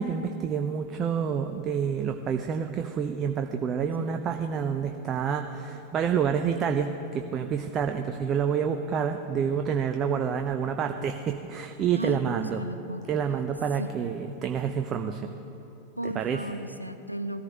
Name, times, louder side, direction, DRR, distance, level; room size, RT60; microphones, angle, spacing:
voice 1, 0.0-12.6 13.1-15.3 16.0-16.4, right 7 dB, 30° right, 6 dB, 0.6 m, -28 dB
voice 2, 12.0-13.1 13.8-13.9 16.0-17.4, right 1 dB, 90° right, 10 dB, 0.6 m, -35 dB
18.0 x 14.0 x 3.7 m, 2.9 s
figure-of-eight pair, 90°, 0 cm